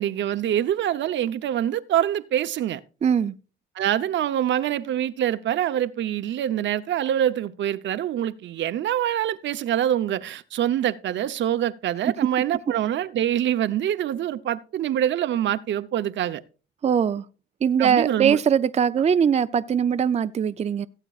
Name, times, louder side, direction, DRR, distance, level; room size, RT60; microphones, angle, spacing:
voice 1, 0.0-2.8 3.7-16.4 17.8-18.4, right 11 dB, 65° right, 0.7 m, -25 dB
voice 2, 3.0-3.3 12.1-12.2 16.8-17.2 17.6-20.9, right 7 dB, 35° right, 0.5 m, -21 dB
17.5 x 8.0 x 2.4 m
cardioid pair, 90°, 20 cm